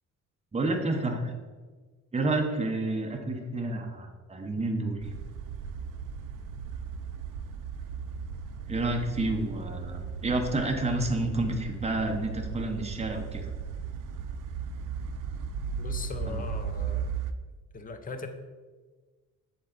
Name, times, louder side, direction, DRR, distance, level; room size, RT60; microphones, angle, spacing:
voice 1, 0.5-1.3 2.1-5.1 8.7-13.5 16.3-16.4, right 2 dB, 20° right, 3 dB, 0.8 m, -30 dB
sound 1, 5.0-17.3, right 6 dB, 75° right, 0.5 m, -36 dB
voice 2, 15.8-17.1 17.7-18.3, left 3 dB, 25° left, 7 dB, 0.6 m, -39 dB
6.7 x 4.4 x 3.8 m, 1.4 s
cardioid pair, 120°, 32 cm